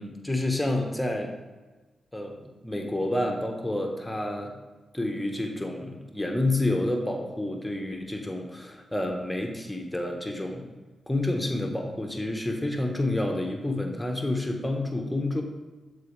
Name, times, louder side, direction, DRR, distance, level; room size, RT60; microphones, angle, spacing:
voice 1, 0.0-1.3 2.1-2.4 2.6-4.6 4.9-10.7 11.1-15.4, left 1 dB, 10° left, 2 dB, 1.3 m, -29 dB
12.0 x 4.2 x 3.4 m, 1.3 s
supercardioid pair, 40°, 0 cm